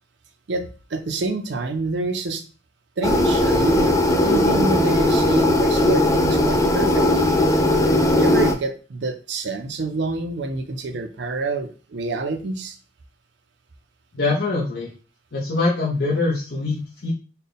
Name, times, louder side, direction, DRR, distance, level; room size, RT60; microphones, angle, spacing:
voice 1, 0.5-2.4 3.0-7.3 8.1-12.8, right 2 dB, 65° right, 8 dB, 0.5 m, -27 dB
sound 1, 3.0-8.5, left 1 dB, 15° left, 0.3 m, -18 dB
voice 2, 14.1-14.9 15.3-17.1, left 3 dB, 60° left, -5 dB, 0.7 m, -23 dB
4.2 x 2.2 x 3.4 m, 0.36 s
head